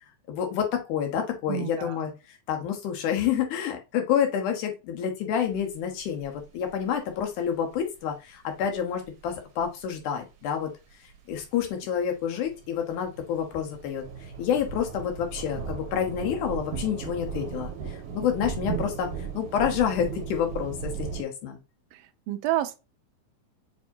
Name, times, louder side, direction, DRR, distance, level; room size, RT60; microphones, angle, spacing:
voice 1, 0.3-2.1 2.5-10.7 11.3-14.0 14.4-19.1 19.3-21.6, left 8 dB, 85° left, 2.6 m, -28 dB
voice 2, 1.5-2.0 21.9-22.0 22.3-22.8, right 14 dB, 80° right, 1.4 m, -29 dB
sound 1, 5.5-6.2 6.8-6.9 7.2-7.3 9.6-9.7 11.5-11.6 12.0-21.2, right 7 dB, 65° right, 1.9 m, -36 dB
6.9 x 2.8 x 2.7 m
omnidirectional pair, 3.5 m